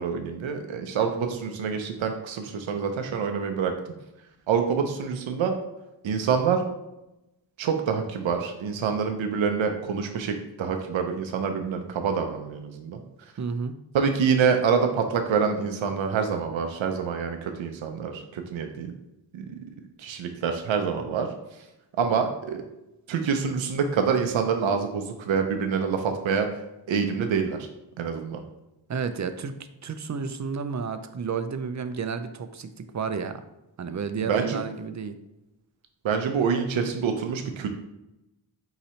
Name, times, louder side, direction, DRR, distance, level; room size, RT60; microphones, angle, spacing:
voice 1, 0.0-3.7 4.5-5.6 6.0-6.7 7.6-13.0 13.9-18.9 19.3-19.5 20.0-21.3 22.0-22.6 23.1-26.5 26.9-27.7 28.0-28.4 34.2-34.6 36.0-37.7, right 6 dB, 90° right, 5 dB, 0.6 m, -26 dB
voice 2, 13.4-13.8 28.9-29.5 29.8-33.4 33.8-35.2, right 5 dB, 40° right, 10 dB, 0.4 m, -31 dB
3.9 x 2.8 x 4.3 m, 0.93 s
cardioid pair, 50°, 45 cm